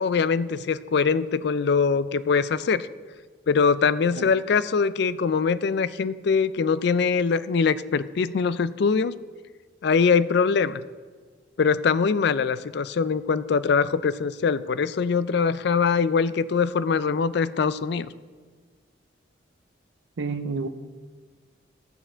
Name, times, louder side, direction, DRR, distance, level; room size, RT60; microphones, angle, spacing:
voice 1, 0.0-2.9 3.5-9.1 9.8-10.8 11.6-18.1, left 5 dB, 60° left, 0.4 m, -23 dB
voice 2, 20.2-20.7, right 4 dB, 75° right, 0.6 m, -29 dB
13.0 x 8.8 x 4.4 m
head